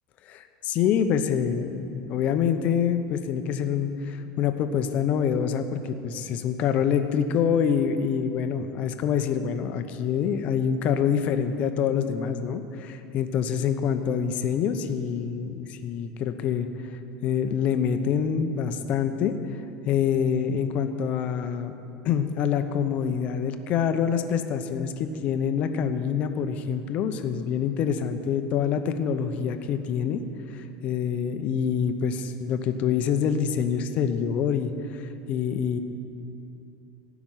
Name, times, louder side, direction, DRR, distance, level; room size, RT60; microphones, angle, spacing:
voice 1, 0.3-16.7 17.2-19.4 19.9-21.7 22.0-30.2 30.5-35.0 35.3-35.8, left 7 dB, 45° left, 8 dB, 0.8 m, -26 dB
16.0 x 6.1 x 9.1 m, 2.8 s
supercardioid pair, 150°, 3 cm